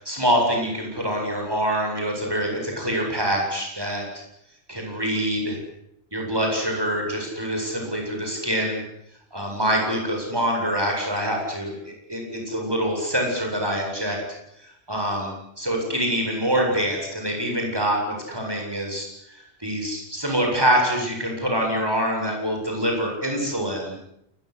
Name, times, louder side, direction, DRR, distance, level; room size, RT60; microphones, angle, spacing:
voice 1, 0.0-4.1 4.7-5.6 6.1-8.8 9.3-11.7 12.1-14.2 14.6-23.9, equal, 20° right, 1 dB, 8.0 m, -25 dB
28.5 x 22.0 x 8.2 m, 0.77 s
omnidirectional pair, 1.1 m